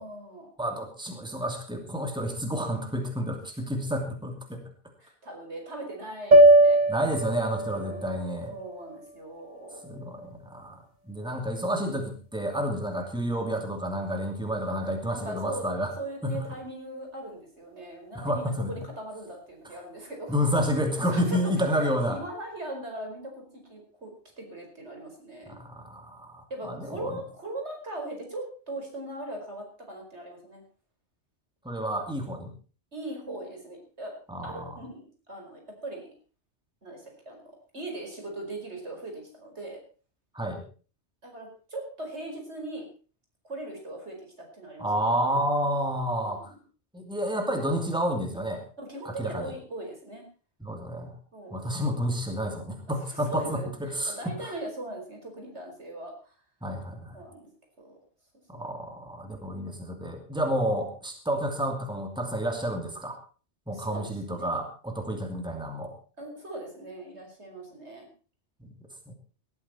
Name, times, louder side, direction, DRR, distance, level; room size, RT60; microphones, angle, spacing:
voice 1, 0.0-0.5 5.0-6.8 7.6-8.0 8.5-9.8 14.7-15.7 16.0-20.3 21.0-23.4 23.7-24.1 24.4-25.6 26.5-30.6 32.9-34.1 34.4-36.1 36.8-37.4 37.7-39.8 41.2-42.9 43.4-45.1 46.2-46.5 48.8-50.3 51.3-51.6 53.0-56.3 57.1-57.5 57.8-58.0 58.6-58.7 63.7-64.5 66.2-68.1, right 1 dB, 75° right, 2 dB, 5.3 m, -40 dB
voice 2, 0.6-4.6 6.9-8.5 9.8-15.9 16.2-16.5 18.1-18.7 20.3-22.2 25.5-27.1 31.6-32.5 34.3-34.8 40.3-40.6 44.8-46.5 46.9-48.6 49.0-49.5 50.6-51.1 51.5-54.5 56.6-57.1 58.5-63.2 63.7-65.9 68.6-68.7, equal, 5° right, 3 dB, 2.8 m, -30 dB
sound 1, 6.3-10.6, right 1 dB, 40° right, 2.5 m, -22 dB
18.5 x 13.5 x 4.4 m, 0.38 s
omnidirectional pair, 1.2 m